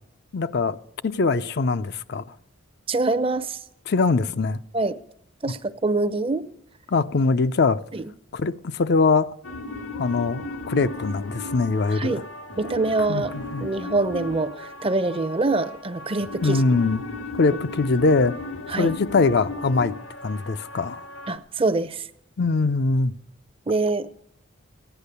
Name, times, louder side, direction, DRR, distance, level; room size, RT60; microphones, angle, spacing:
voice 1, 0.3-0.8 1.0-2.2 3.9-4.6 6.9-7.8 8.3-9.3 10.0-12.2 13.1-13.7 16.4-17.0 17.3-18.4 18.8-20.0 20.2-21.0 22.4-23.1, left 3 dB, 55° left, 0.5 m, -22 dB
voice 2, 2.9-3.6 4.7-5.0 5.4-6.5 7.9-8.0 11.9-12.2 12.6-13.3 13.6-16.6 18.7-18.9 21.3-22.0 23.7-24.1, right 3 dB, 25° right, 0.6 m, -24 dB
sound 1, 9.4-21.4, left 2 dB, 85° left, 1.4 m, -36 dB
15.0 x 10.0 x 6.7 m
head